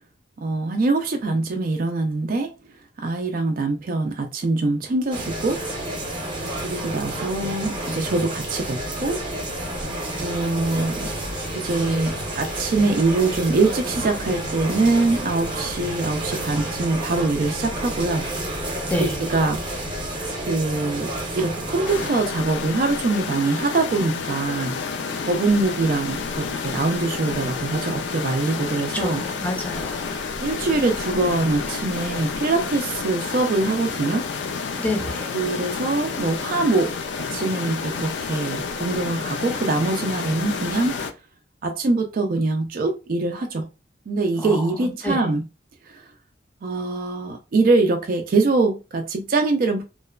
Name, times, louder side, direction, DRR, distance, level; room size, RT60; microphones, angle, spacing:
voice 1, 0.4-2.5 3.0-5.6 6.6-9.2 10.2-11.1 11.5-18.3 18.9-19.6 20.4-24.8 25.2-29.2 30.4-34.3 35.3-36.9 37.3-41.0 41.6-43.7 44.1-45.4 45.8-46.1 46.6-49.8, right 3 dB, 50° right, 0.3 m, -23 dB
sound 1, 5.1-22.1, right 1 dB, 25° right, 0.7 m, -30 dB
Vehicle, 8.4-20.6, left 1 dB, 85° left, 0.8 m, -40 dB
voice 2, 18.9-19.2 28.9-30.2 34.8-35.4 44.4-45.2, left 1 dB, 10° left, 0.5 m, -28 dB
sound 2, 21.8-41.1, left 5 dB, 70° left, 0.3 m, -30 dB
2.9 x 2.1 x 2.3 m
head